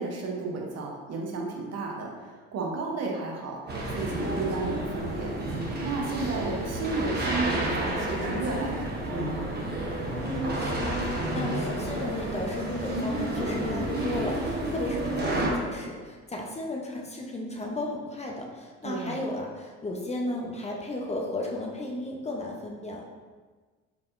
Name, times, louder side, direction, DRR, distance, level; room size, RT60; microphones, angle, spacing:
voice 1, 0.0-3.6 3.9-5.3 5.8-9.4 18.8-19.2, right 3 dB, 50° right, 0 dB, 0.9 m, -33 dB
sound 1, 3.7-15.5, right 1 dB, 30° right, 1.0 m, -30 dB
voice 2, 10.2-23.0, left 1 dB, 20° left, 0 dB, 0.7 m, -34 dB
4.8 x 3.4 x 2.5 m, 1.4 s
hypercardioid pair, 70°, 32 cm